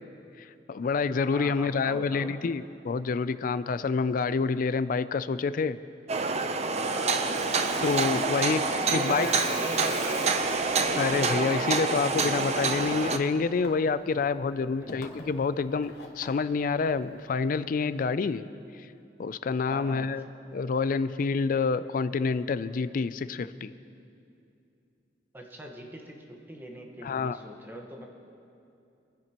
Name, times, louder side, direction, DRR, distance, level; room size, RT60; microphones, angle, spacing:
voice 1, 0.4-5.8 7.8-8.6 8.9-9.3 11.0-18.4 19.2-20.2 20.5-23.7 27.0-27.4, left 4 dB, 50° left, 14 dB, 0.4 m, -28 dB
voice 2, 1.3-2.4 6.9-7.4 8.6-10.5 14.8-14.9 19.7-20.1 25.3-28.1, right 1 dB, 10° right, 1 dB, 1.3 m, -41 dB
sound 1, 6.1-13.2, right 4 dB, 40° right, 0.6 m, -27 dB
Water tap faucet / Sink (filling or washing), 7.1-17.3, left 3 dB, 65° left, 1.3 m, -47 dB
22.0 x 10.5 x 3.0 m, 2.6 s
head